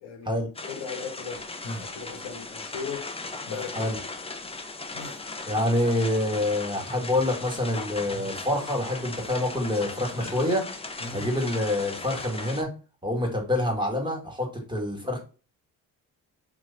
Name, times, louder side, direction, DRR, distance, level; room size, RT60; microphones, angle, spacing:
voice 1, 0.0-1.5 1.8-3.1 3.5-3.9, left 6 dB, 80° left, 1.0 m, -37 dB
sound 1, 0.5-12.6, left 3 dB, 15° left, 0.6 m, -38 dB
sound 2, 1.6-2.1 3.4-3.9 4.4-4.5 4.9-5.4 5.7-6.2 7.1-7.5 8.0-8.4 9.0-9.1 10.1-10.7 11.0-11.4, left 1 dB, 60° left, 1.1 m, -41 dB
voice 2, 5.5-10.6 11.1-12.7 13.0-15.2, left 1 dB, 10° right, 1.5 m, -26 dB
3.0 x 2.1 x 3.9 m
supercardioid pair, 55°, 40 cm